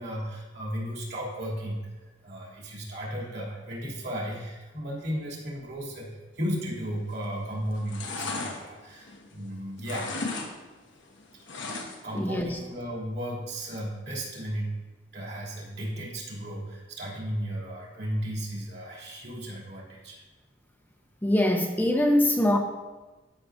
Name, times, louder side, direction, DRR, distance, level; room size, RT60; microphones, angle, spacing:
voice 1, 0.0-1.9 2.2-10.5 11.6-11.7 12.0-14.7 15.1-20.2, equal, 65° right, -4 dB, 2.8 m, -35 dB
sound 1, 7.0-7.4 7.7-9.5 9.8-10.5 10.8-12.2 12.5-12.6, left 3 dB, 90° left, 1.1 m, -35 dB
voice 2, 12.1-12.6 21.2-22.6, left 1 dB, 10° left, 3 dB, 0.5 m, -23 dB
13.0 x 6.2 x 2.6 m, 1.2 s
head